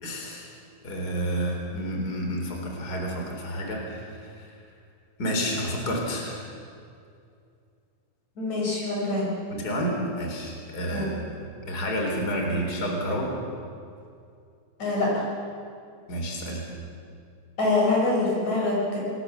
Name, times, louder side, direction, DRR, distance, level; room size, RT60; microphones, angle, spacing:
voice 1, 0.0-0.5 0.8-4.5 5.2-6.4 9.5-13.3 16.1-16.6, equal, 30° left, 1 dB, 4.2 m, -30 dB
voice 2, 8.4-9.3 10.9-11.1 14.8-15.1 17.6-19.0, left 2 dB, 65° left, -3 dB, 8.2 m, -25 dB
27.0 x 21.5 x 7.0 m, 2.4 s
omnidirectional pair, 3.4 m